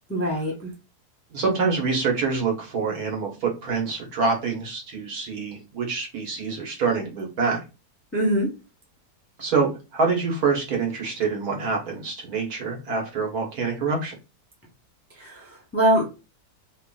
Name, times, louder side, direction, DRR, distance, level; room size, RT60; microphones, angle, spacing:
voice 1, 0.1-0.7 8.1-8.5 15.1-16.0, right 1 dB, 10° left, -2 dB, 0.7 m, -23 dB
voice 2, 1.3-7.6 9.4-14.1, right 4 dB, 65° right, 0 dB, 1.7 m, -26 dB
3.2 x 2.4 x 3.8 m, 0.28 s
omnidirectional pair, 1.7 m